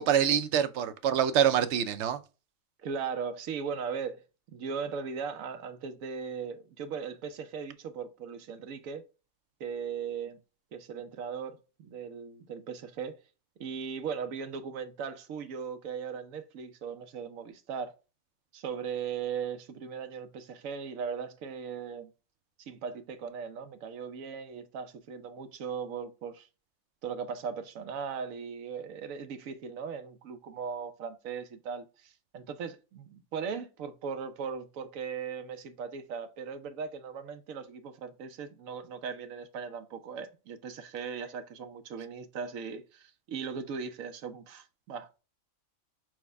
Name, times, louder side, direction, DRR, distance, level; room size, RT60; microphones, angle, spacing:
voice 1, 0.0-2.2, right 9 dB, 65° right, 0.8 m, -25 dB
voice 2, 2.8-4.2 4.5-9.0 9.6-10.4 10.7-13.2 13.6-17.9 18.5-22.1 22.7-26.5 27.0-45.2, right 6 dB, 85° right, 1.1 m, -38 dB
6.2 x 2.2 x 3.3 m
omnidirectional pair, 1.4 m